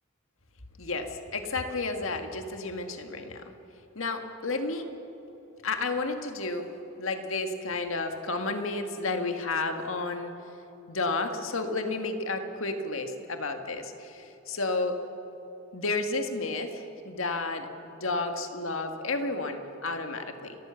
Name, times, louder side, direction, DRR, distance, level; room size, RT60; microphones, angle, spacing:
voice 1, 0.8-3.4 4.0-4.9 5.6-6.7 7.0-10.3 10.9-15.0 15.7-20.6, left 3 dB, 75° left, 6 dB, 1.8 m, -31 dB
30.0 x 14.0 x 7.1 m, 3.0 s
head